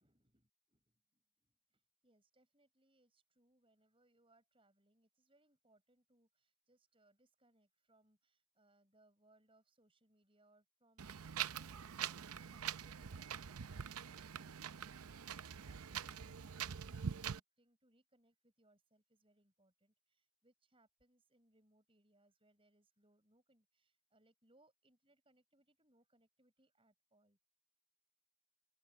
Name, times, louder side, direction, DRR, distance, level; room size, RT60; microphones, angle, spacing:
voice 1, 0.0-27.5, right 1 dB, 25° right, 6.7 m, -75 dB
Wind, 11.0-17.4, right 8 dB, 80° right, 0.6 m, -44 dB
open air
head